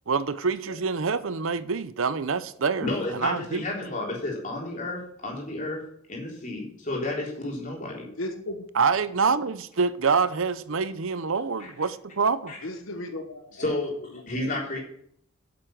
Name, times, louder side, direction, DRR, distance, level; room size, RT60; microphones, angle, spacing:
voice 1, 0.1-3.6 8.8-12.5, right 5 dB, 70° right, 0.7 m, -26 dB
voice 2, 2.8-5.8 6.1-8.1 11.6-11.7 12.5-12.6 13.6-13.9 14.3-14.8, left 2 dB, 35° left, 3.7 m, -31 dB
voice 3, 8.2-8.7 12.6-13.7 14.2-14.8, left 1 dB, 65° left, 1.2 m, -36 dB
8.6 x 7.9 x 7.7 m
head